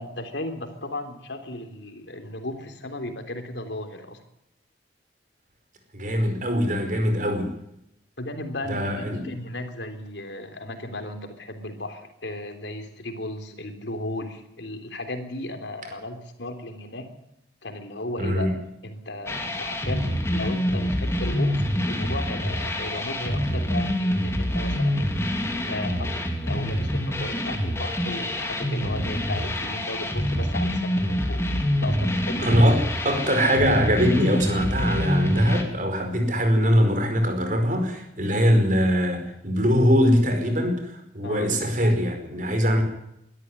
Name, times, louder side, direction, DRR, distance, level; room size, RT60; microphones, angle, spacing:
voice 1, 0.0-4.2 8.2-17.1 17.6-18.5 18.8-25.1 25.7-31.4 31.7-32.6 41.2-41.5, left 1 dB, 75° left, 6 dB, 3.3 m, -35 dB
voice 2, 5.9-7.5 8.7-9.2 18.2-18.5 32.4-42.8, equal, 45° right, 5 dB, 5.0 m, -22 dB
sound 1, 19.3-35.6, equal, 15° left, 2.9 m, -26 dB
23.0 x 13.0 x 9.8 m, 0.82 s
head